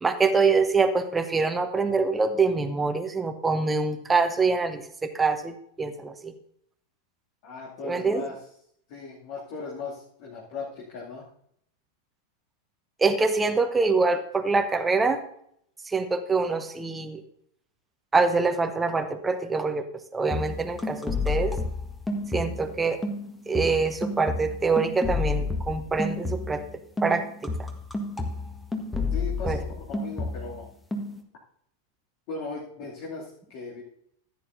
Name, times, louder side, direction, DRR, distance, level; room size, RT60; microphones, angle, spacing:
voice 1, 0.0-6.3 7.8-8.2 13.0-15.2 15.8-17.2 18.1-19.9 20.1-21.6 22.3-23.0 23.5-26.6 27.0-27.7 29.4-29.6, right 4 dB, 10° right, 8 dB, 1.0 m, -25 dB
voice 2, 7.4-8.4 8.9-11.2 29.1-30.7 32.3-33.8, left 4 dB, 45° left, -5 dB, 2.6 m, -38 dB
sound 1, 20.2-22.8 23.0-26.7 27.0-30.6 30.9-31.2, left 3 dB, 5° left, 1.4 m, -30 dB
15.5 x 9.5 x 2.7 m, 0.69 s
figure-of-eight pair, 90°, 0 cm